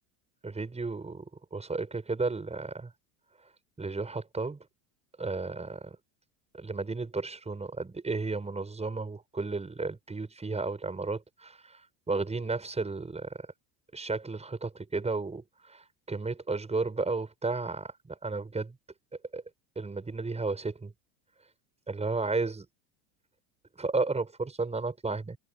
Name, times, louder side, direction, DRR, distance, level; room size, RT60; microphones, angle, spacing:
voice 1, 0.4-2.9 3.8-4.6 5.2-6.0 6.5-11.8 12.1-13.5 13.9-18.8 19.3-19.4 19.8-20.9 21.9-22.7 23.8-25.4, right 3 dB, 15° right, 7.5 m, -33 dB
supercardioid pair, 115°, 47 cm